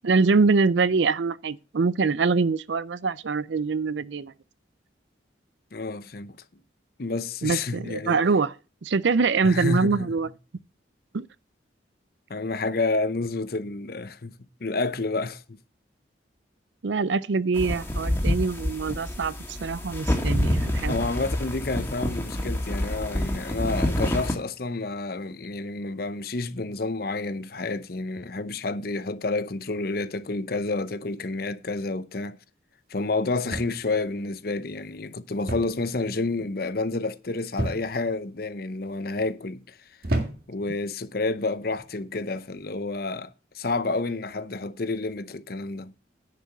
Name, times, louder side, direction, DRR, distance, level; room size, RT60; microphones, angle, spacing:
voice 1, 0.0-4.3 7.4-8.5 8.8-10.3 11.1-11.3 16.8-19.3 19.6-21.0, right 4 dB, 75° right, 0.5 m, -24 dB
voice 2, 5.7-6.4 7.0-8.2 9.4-10.2 12.3-14.3 14.6-15.6 20.9-32.4 32.9-39.8 40.5-45.9, left 3 dB, 55° left, 0.7 m, -29 dB
sound 1, 17.5-24.3, left 1 dB, 15° left, 1.8 m, -27 dB
sound 2, 33.5-34.0 35.5-35.9 36.1-36.6 37.6-38.1 38.8-39.2 40.0-40.7 41.6-41.9, right 1 dB, 50° right, 2.0 m, -31 dB
10.5 x 5.0 x 6.7 m
head